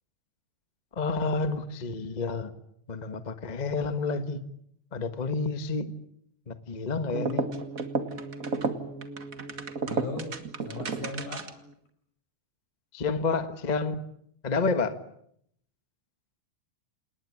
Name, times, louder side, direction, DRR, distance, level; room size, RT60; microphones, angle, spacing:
voice 1, 0.9-2.5 2.9-4.4 4.9-5.9 6.5-7.4 12.9-14.0 14.4-14.9, left 4 dB, 50° left, 10 dB, 0.5 m, -29 dB
sound 1, 7.1-11.7, right 3 dB, 35° right, 1.6 m, -33 dB
voice 2, 9.8-10.3 10.6-11.5, left 3 dB, 70° left, 6 dB, 7.6 m, -37 dB
28.0 x 19.5 x 9.8 m, 0.72 s
omnidirectional pair, 3.6 m